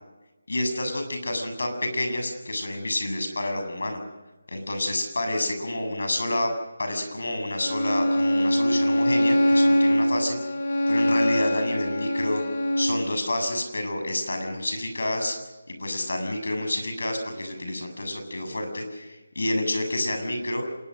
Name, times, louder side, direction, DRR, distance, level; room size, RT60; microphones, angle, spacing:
voice 1, 0.5-4.0 4.5-6.5 6.8-10.3 10.9-12.4 12.8-15.4 15.8-20.7, left 1 dB, 80° left, 6 dB, 7.5 m, -29 dB
Bowed string instrument, 7.6-13.0, equal, 55° left, 4.3 m, -23 dB
26.0 x 21.0 x 6.6 m, 1.1 s
figure-of-eight pair, 170°, 0 cm